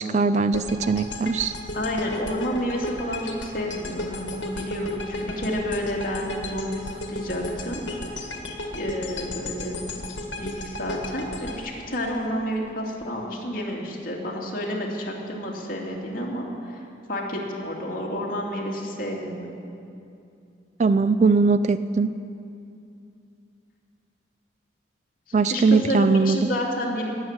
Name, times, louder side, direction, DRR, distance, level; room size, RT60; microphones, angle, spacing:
voice 1, 0.0-1.5 20.8-22.2 25.3-26.4, right 4 dB, 35° right, 13 dB, 0.3 m, -20 dB
sound 1, 0.5-12.7, left 2 dB, 70° left, 1.8 m, -34 dB
voice 2, 1.7-7.8 8.7-10.0 10.4-16.8 17.1-19.5 25.4-27.1, equal, 50° left, -2 dB, 2.5 m, -30 dB
17.5 x 7.4 x 9.6 m, 2.6 s
head